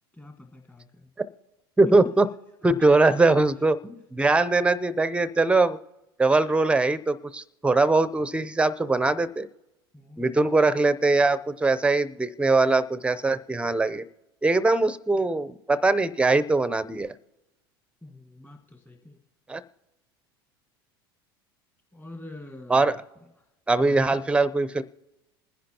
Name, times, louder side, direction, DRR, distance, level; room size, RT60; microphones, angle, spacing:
voice 1, 0.1-1.1 9.9-10.3 18.0-19.2 21.9-22.9 23.8-24.1, left 1 dB, 15° left, 1 dB, 1.5 m, -44 dB
voice 2, 1.8-2.3 2.6-5.8 6.2-9.5 10.2-14.0 14.4-17.1 19.5-19.6 22.7-23.0 23.7-24.8, right 3 dB, 10° right, 15 dB, 0.6 m, -22 dB
27.0 x 10.0 x 2.9 m, 0.99 s
hypercardioid pair, 85°, 13 cm